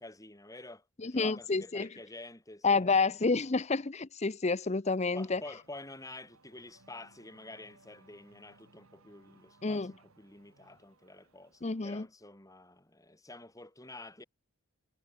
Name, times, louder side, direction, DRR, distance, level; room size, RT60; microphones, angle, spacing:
voice 1, 0.0-3.3 5.1-14.2, left 2 dB, 15° left, 4.0 m, -49 dB
voice 2, 1.0-1.9 2.6-5.4 9.6-9.9 11.6-12.1, left 4 dB, 30° left, 0.7 m, -29 dB
Race car auto racing / Accelerating revving vroom, 4.8-12.1, right 2 dB, 80° right, 4.9 m, -64 dB
head